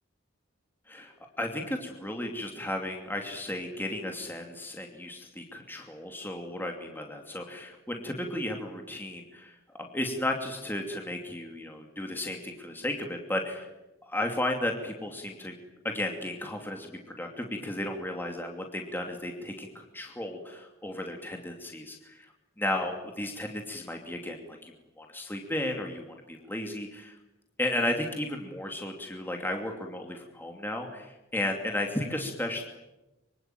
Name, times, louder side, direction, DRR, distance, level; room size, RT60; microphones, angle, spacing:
voice 1, 0.9-13.7 14.0-15.5 15.8-22.3 22.6-27.2 27.6-32.6, left 1 dB, 10° left, 2 dB, 2.7 m, -34 dB
25.0 x 24.5 x 9.1 m, 0.99 s
head